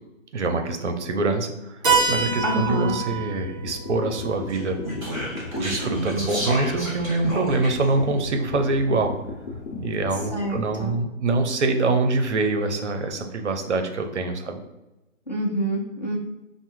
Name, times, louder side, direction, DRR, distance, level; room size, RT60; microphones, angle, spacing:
voice 1, 0.3-1.8 2.1-4.8 5.6-9.1 9.8-14.6, right 3 dB, 60° right, 6 dB, 0.6 m, -24 dB
sound 1, 1.8-11.0, left 3 dB, 65° left, 0.8 m, -37 dB
Keyboard (musical), 1.8-6.3, right 5 dB, 40° right, 1.2 m, -28 dB
voice 2, 2.4-3.0 10.3-10.9 15.3-16.2, right 1 dB, 35° left, -3 dB, 0.4 m, -27 dB
Speech, 4.5-7.9, equal, 5° right, 1.2 m, -31 dB
5.1 x 2.1 x 3.1 m, 0.99 s
hypercardioid pair, 160°, 40 cm